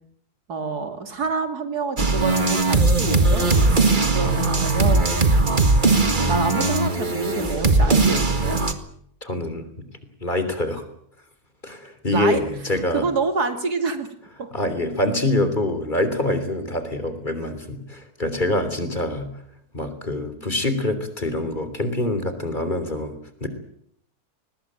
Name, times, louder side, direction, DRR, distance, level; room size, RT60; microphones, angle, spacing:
voice 1, 0.5-5.2 6.2-8.6 12.1-12.4 12.9-14.1 14.4-14.5, right 4 dB, 85° right, 8 dB, 3.1 m, -27 dB
sound 1, 2.0-8.7, right 3 dB, 30° right, 2.0 m, -19 dB
voice 2, 4.1-4.5 9.2-9.7 10.2-10.8 11.6-13.1 14.5-19.3 19.7-23.5, left 1 dB, 30° left, 10 dB, 3.6 m, -25 dB
21.5 x 20.5 x 8.9 m, 0.69 s
omnidirectional pair, 1.6 m